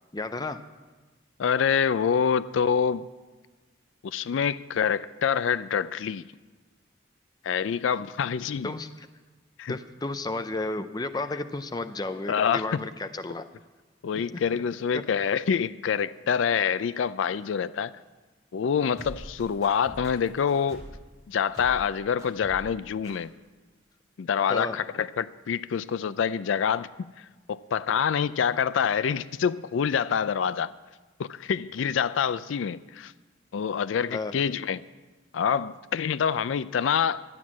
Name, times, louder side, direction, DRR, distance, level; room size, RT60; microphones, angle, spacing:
voice 1, 0.1-0.6 8.6-9.1 9.7-13.5 24.5-24.8 34.1-34.4, left 2 dB, 20° left, 0.5 m, -32 dB
voice 2, 1.4-3.1 4.0-6.2 7.4-8.7 9.6-9.8 12.3-12.8 14.0-17.9 18.5-20.8 21.3-23.3 24.2-26.9 27.2-30.7 31.2-33.1 33.5-34.8 35.3-37.2, left 7 dB, 85° left, 0.4 m, -26 dB
sound 1, 19.0-21.0 21.5-21.9 22.2-22.7 23.0-23.1, equal, 20° right, 3.2 m, -44 dB
12.0 x 9.3 x 7.2 m
head